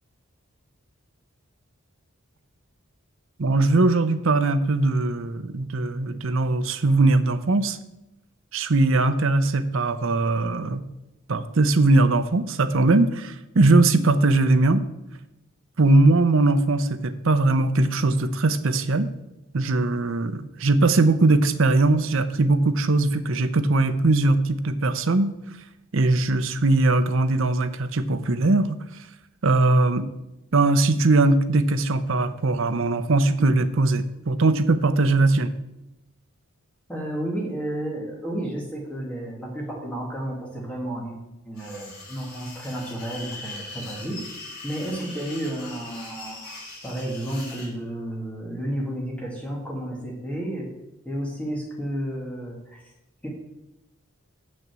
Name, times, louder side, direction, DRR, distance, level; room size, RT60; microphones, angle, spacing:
voice 1, 3.4-7.8 8.5-10.8 11.3-14.8 15.8-19.1 19.5-25.3 25.9-28.7 29.4-30.1 30.5-35.5, right 2 dB, 60° right, 11 dB, 0.6 m, -20 dB
voice 2, 36.9-41.2 41.4-44.2 44.6-46.6 46.8-50.7 51.1-52.9 53.2-53.3, right 1 dB, 5° left, -3 dB, 2.0 m, -32 dB
sound 1, 41.6-47.7, left 2 dB, 55° left, 3.2 m, -41 dB
6.9 x 6.4 x 7.4 m, 0.93 s
head